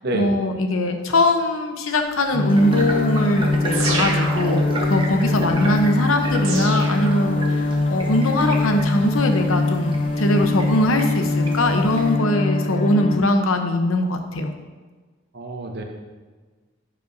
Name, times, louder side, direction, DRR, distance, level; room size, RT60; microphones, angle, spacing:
voice 1, 0.1-14.5, left 1 dB, 80° left, 5 dB, 0.8 m, -21 dB
sound 1, 2.3-13.2, left 2 dB, 30° left, 0.4 m, -23 dB
sound 2, 2.5-12.2, right 1 dB, 25° right, 0.9 m, -34 dB
sound 3, 3.7-5.0 6.4-7.7, right 3 dB, 85° right, 1.5 m, -28 dB
voice 2, 15.3-15.8, right 2 dB, 50° right, 3 dB, 0.9 m, -27 dB
11.5 x 5.4 x 2.6 m, 1.4 s
head